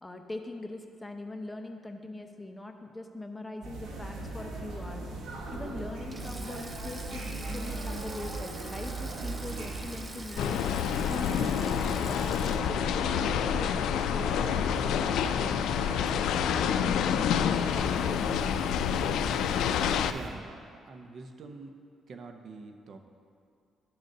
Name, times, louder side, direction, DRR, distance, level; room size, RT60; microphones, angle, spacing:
voice 1, 0.0-5.1 5.5-7.2 7.5-15.6 16.4-19.0, left 2 dB, 10° left, 4 dB, 0.7 m, -42 dB
sound 1, 3.6-20.3, right 2 dB, 80° right, 1.3 m, -40 dB
Sink (filling or washing), 6.0-14.4 14.7-14.9 16.1-16.4, right 2 dB, 25° right, 0.6 m, -47 dB
sound 2, 10.4-20.1, left 8 dB, 80° left, 0.3 m, -28 dB
voice 2, 20.1-21.7 22.1-23.0, right 3 dB, 60° right, 6 dB, 0.7 m, -45 dB
11.5 x 3.9 x 6.5 m, 2.3 s
cardioid pair, 90°, 0 cm